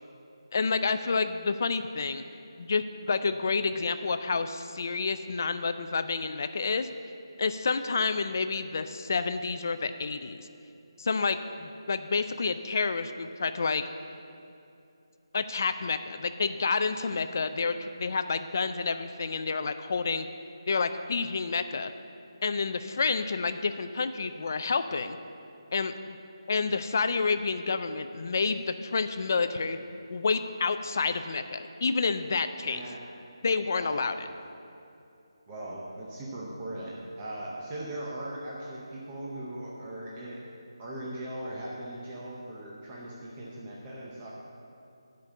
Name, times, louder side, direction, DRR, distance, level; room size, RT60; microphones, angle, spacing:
voice 1, 0.5-2.2 2.6-6.9 7.4-10.5 11.0-13.8 15.3-20.3 20.7-21.9 22.4-25.2 25.7-26.2 26.5-29.8 30.1-32.8 33.4-34.1, left 4 dB, 40° left, 10 dB, 0.4 m, -29 dB
voice 2, 32.6-33.0 33.7-34.1 35.5-40.5 40.8-44.3, right 1 dB, 15° right, -5 dB, 0.7 m, -39 dB
9.7 x 5.2 x 7.9 m, 2.6 s
figure-of-eight pair, 170°, 3 cm